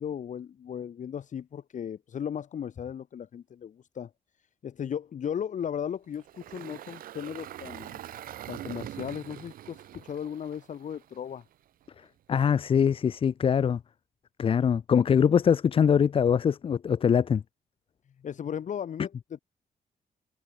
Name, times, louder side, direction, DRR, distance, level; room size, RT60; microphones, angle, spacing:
voice 1, 0.0-4.1 4.6-8.0 8.5-11.4 18.2-19.4, left 8 dB, 60° left, 1.5 m, -36 dB
Engine, 6.1-11.4, right 12 dB, 85° right, 2.0 m, -43 dB
voice 2, 12.3-13.8 14.4-17.4, left 7 dB, 40° left, 0.4 m, -23 dB
cardioid pair, 85°, 14 cm